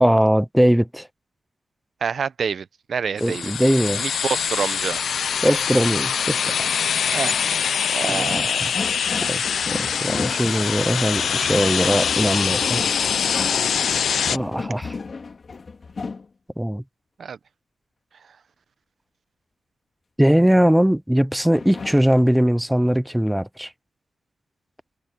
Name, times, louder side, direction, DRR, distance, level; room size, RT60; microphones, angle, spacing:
voice 1, 0.0-1.1 3.2-4.0 5.4-6.7 8.1-8.7 9.3-13.1 14.3-14.9 16.6-16.8 20.2-23.7, equal, 5° right, 0.4 m, -20 dB
voice 2, 2.0-3.5 4.0-5.0 7.1-7.4 7.9-8.7 9.4-9.7 17.2-17.4, right 6 dB, 65° right, 0.8 m, -27 dB
sound 1, 3.2-14.4, left 7 dB, 80° left, 0.5 m, -24 dB
sound 2, 8.2-10.7 11.2-16.3 21.5-22.1, left 4 dB, 45° left, 2.7 m, -34 dB
wide cardioid pair, 115°, 0 cm